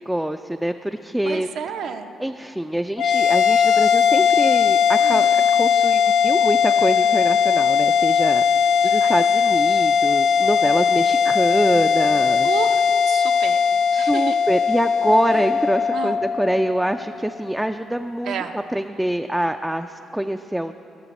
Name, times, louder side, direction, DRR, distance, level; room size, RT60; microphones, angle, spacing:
voice 1, 0.0-1.5 2.2-12.5 13.9-20.7, right 1 dB, 5° right, 6 dB, 0.3 m, -25 dB
voice 2, 1.2-2.1 5.0-5.3 8.8-9.1 12.4-12.8 13.0-13.6 13.9-14.4 15.3-15.4 15.9-16.2 18.2-18.5, right 7 dB, 75° right, 6 dB, 0.6 m, -31 dB
sound 1, 3.0-17.6, left 7 dB, 85° left, 0.4 m, -19 dB
19.0 x 6.9 x 4.2 m, 2.8 s
cardioid pair, 90°, 0 cm